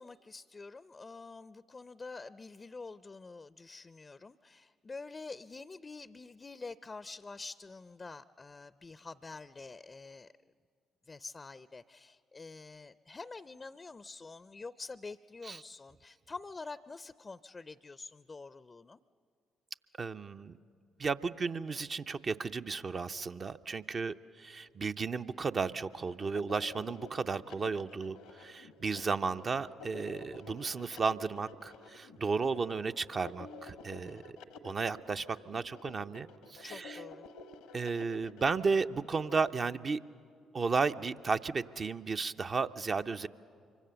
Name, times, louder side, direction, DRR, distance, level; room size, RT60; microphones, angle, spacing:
voice 1, 0.0-10.3 11.1-19.0 34.0-34.3 36.6-37.3, left 3 dB, 35° left, 15 dB, 0.5 m, -47 dB
voice 2, 20.0-20.6 21.0-34.2 34.6-37.0 37.7-40.0 40.5-43.3, right 4 dB, 45° right, 8 dB, 0.6 m, -34 dB
sound 1, 25.8-39.5, left 3 dB, 80° left, 0.9 m, -50 dB
25.0 x 24.0 x 6.9 m, 2.2 s
hypercardioid pair, 50°, 0 cm